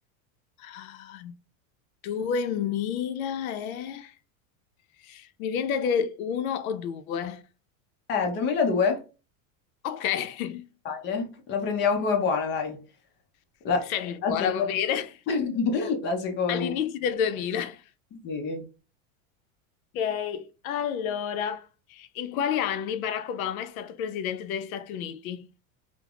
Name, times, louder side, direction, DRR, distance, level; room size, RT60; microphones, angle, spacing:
voice 1, 0.6-1.4 2.0-4.2 5.0-7.4 9.8-10.7 13.9-15.2 16.5-17.8 19.9-25.5, left 8 dB, 85° left, 0.6 m, -30 dB
voice 2, 8.1-9.0 10.9-12.8 13.6-13.9 14.2-14.7 15.3-16.7 18.1-18.7, left 5 dB, 25° left, 0.5 m, -26 dB
3.3 x 2.1 x 2.2 m
supercardioid pair, 145°, 41 cm